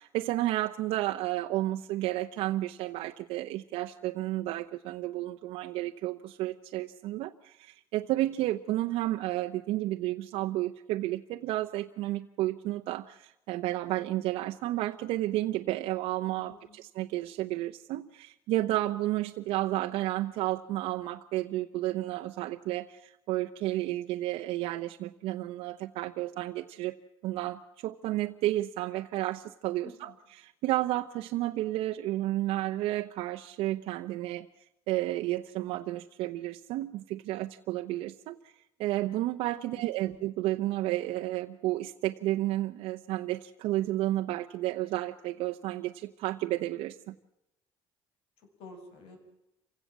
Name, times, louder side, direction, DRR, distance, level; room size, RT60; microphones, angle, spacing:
voice 1, 0.0-27.0 27.2-30.1 30.4-34.5 34.9-38.4 38.8-47.1, right 16 dB, 75° right, 5 dB, 0.9 m, -32 dB
voice 2, 16.4-16.8 29.8-30.2 39.6-40.2 48.6-49.2, left 3 dB, 70° left, 4 dB, 7.1 m, -50 dB
27.5 x 16.5 x 7.5 m, 0.88 s
cardioid pair, 165°, 10 cm